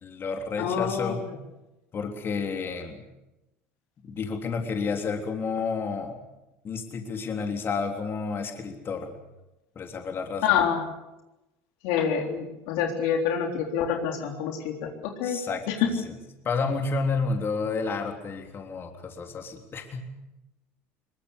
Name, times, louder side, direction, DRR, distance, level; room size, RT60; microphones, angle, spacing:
voice 1, 0.0-1.3 1.9-3.0 4.0-6.2 6.6-9.1 9.8-10.6 15.2-16.2 16.4-20.0, left 4 dB, 35° left, 4 dB, 3.6 m, -31 dB
voice 2, 0.6-1.1 10.4-10.8 11.8-14.9 15.2-15.4, left 8 dB, 75° left, 3 dB, 3.8 m, -26 dB
23.0 x 21.0 x 8.2 m, 0.97 s
supercardioid pair, 95°, 6 cm